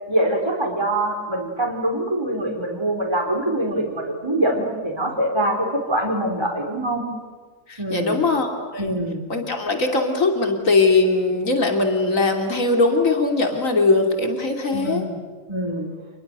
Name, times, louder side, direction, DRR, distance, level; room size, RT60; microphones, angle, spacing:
voice 1, 0.1-7.0 7.8-8.2 8.8-9.2 14.7-15.2 15.5-15.9, right 1 dB, 20° right, 0 dB, 4.1 m, -24 dB
voice 2, 7.7-9.0 9.3-15.0, left 3 dB, 80° left, 4 dB, 3.5 m, -20 dB
29.0 x 22.0 x 8.1 m, 1.4 s
omnidirectional pair, 1.4 m